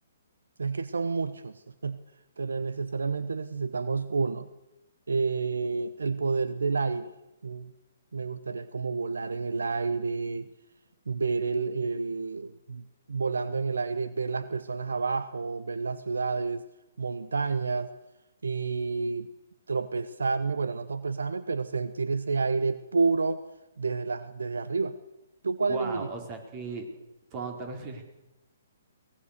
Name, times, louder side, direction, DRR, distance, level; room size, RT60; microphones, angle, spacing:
voice 1, 0.6-2.0 2.4-4.5 5.1-7.1 7.4-7.7 8.1-10.5 11.1-16.6 17.0-17.9 18.4-19.3 19.7-23.4 23.8-24.9 25.4-26.1, right 4 dB, 75° right, 13 dB, 0.9 m, -29 dB
voice 2, 25.7-26.9 27.3-28.0, right 3 dB, 35° right, 4 dB, 4.4 m, -36 dB
23.0 x 19.5 x 6.8 m, 0.95 s
figure-of-eight pair, 130°, 0 cm